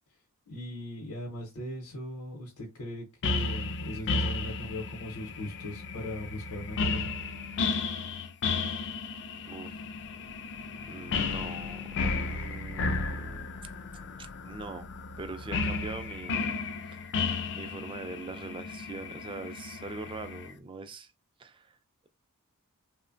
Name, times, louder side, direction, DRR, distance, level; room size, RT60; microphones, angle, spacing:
voice 1, 0.5-7.1, left 1 dB, 80° left, 0.8 m, -39 dB
sound 1, 3.2-20.5, left 4 dB, 55° left, 0.4 m, -33 dB
voice 2, 9.5-9.8 10.9-13.7 14.2-14.9 15.2-16.6 16.9-17.1 17.5-21.1 21.4-21.8, right 3 dB, 25° right, 0.3 m, -42 dB
3.0 x 2.1 x 2.5 m
head